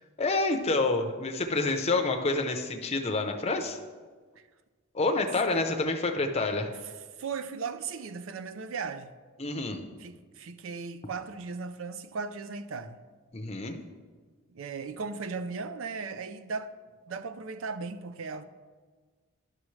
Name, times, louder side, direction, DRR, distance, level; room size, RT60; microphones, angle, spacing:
voice 1, 0.2-3.8 4.9-6.7 9.4-9.9 13.3-13.8, left 3 dB, 30° left, 0.6 m, -28 dB
voice 2, 7.2-9.1 10.0-13.0 14.5-16.7 17.1-18.4, right 4 dB, 70° right, 0.5 m, -37 dB
11.5 x 6.1 x 3.2 m
head